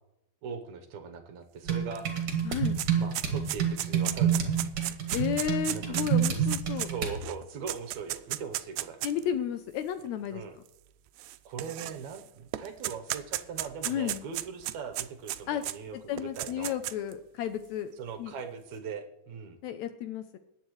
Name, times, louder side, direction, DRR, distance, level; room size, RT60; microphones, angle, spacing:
voice 1, 0.4-2.1 2.9-4.5 5.7-9.0 10.3-10.6 11.5-16.7 18.0-19.6, right 6 dB, 70° right, 5 dB, 2.2 m, -40 dB
sound 1, 1.7-7.2, right 8 dB, 50° right, 2.6 m, -29 dB
sound 2, 2.0-2.1 2.3-9.2 10.0-10.1 11.2-12.2 12.5-15.8 16.2-17.1, right 15 dB, 90° right, 2.1 m, -34 dB
voice 2, 2.4-2.8 5.1-6.9 9.0-10.4 13.8-14.2 15.5-15.6 15.9-17.9 18.2-18.3 19.6-20.4, left 9 dB, 75° left, 9 dB, 1.8 m, -32 dB
21.0 x 9.0 x 3.2 m, 0.91 s
omnidirectional pair, 3.6 m